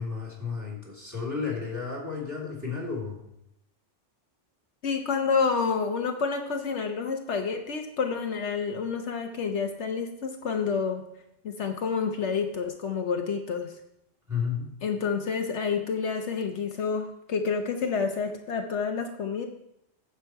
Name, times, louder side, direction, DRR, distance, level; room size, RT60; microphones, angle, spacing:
voice 1, 0.0-3.2 14.3-14.7, left 5 dB, 15° right, -1 dB, 3.0 m, -32 dB
voice 2, 4.8-11.0 11.4-13.7 14.8-19.5, left 5 dB, 70° left, 4 dB, 1.1 m, -29 dB
9.8 x 7.3 x 4.6 m, 0.79 s
omnidirectional pair, 1.2 m